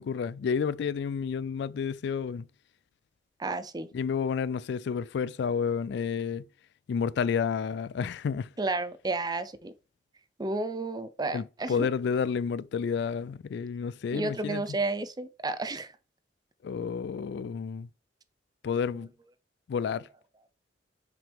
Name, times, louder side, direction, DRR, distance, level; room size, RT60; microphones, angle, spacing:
voice 1, 0.0-2.5 3.9-6.5 6.9-8.5 11.3-14.8 16.6-17.9 18.6-19.1 19.7-20.1, left 6 dB, 70° left, 0.3 m, -30 dB
voice 2, 3.4-3.9 8.6-9.7 10.4-11.9 14.1-15.9, right 2 dB, 20° right, 0.6 m, -32 dB
6.0 x 4.9 x 3.5 m
head